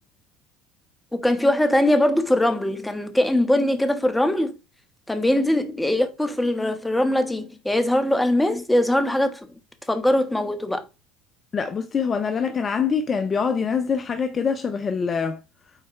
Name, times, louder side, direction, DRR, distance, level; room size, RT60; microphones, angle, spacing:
voice 1, 1.1-4.5 5.1-9.5 9.9-10.8, left 1 dB, 10° left, 1.5 m, -21 dB
voice 2, 11.5-15.4, left 6 dB, 35° left, 0.6 m, -24 dB
9.0 x 4.3 x 3.2 m
hypercardioid pair, 70°, 0 cm